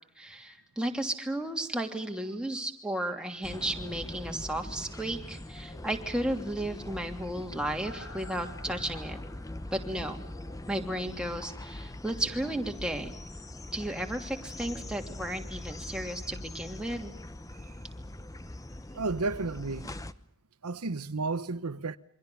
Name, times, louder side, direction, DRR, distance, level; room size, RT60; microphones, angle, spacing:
voice 1, 0.2-9.2 9.7-10.2 10.7-13.1 13.7-17.1, right 1 dB, 5° right, 3.0 m, -34 dB
sound 1, 3.4-20.1, left 1 dB, 15° left, 1.0 m, -42 dB
sound 2, 3.7-11.6 11.9-12.0, left 2 dB, 75° left, 4.2 m, -53 dB
voice 2, 18.9-19.9 20.6-22.0, right 3 dB, 85° right, 1.0 m, -32 dB
28.0 x 24.5 x 7.0 m
head